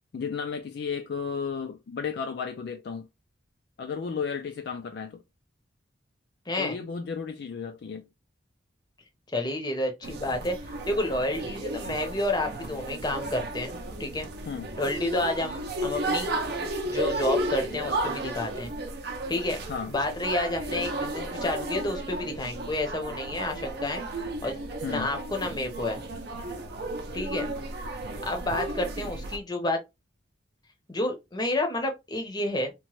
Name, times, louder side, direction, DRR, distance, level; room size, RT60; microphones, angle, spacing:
voice 1, 0.1-3.1 3.8-5.2 6.6-8.1 14.5-14.7 19.6-19.9 24.8-25.1, left 6 dB, 55° left, 0.3 m, -33 dB
voice 2, 6.5-6.8 9.3-14.3 14.8-16.3 16.8-18.7 19.3-19.6 19.9-24.6 24.9-26.0 27.1-27.5 28.2-29.8 30.9-32.7, left 1 dB, 20° left, 0.6 m, -30 dB
sound 1, 10.0-29.4, right 1 dB, 55° right, 0.5 m, -34 dB
2.9 x 2.1 x 3.0 m
head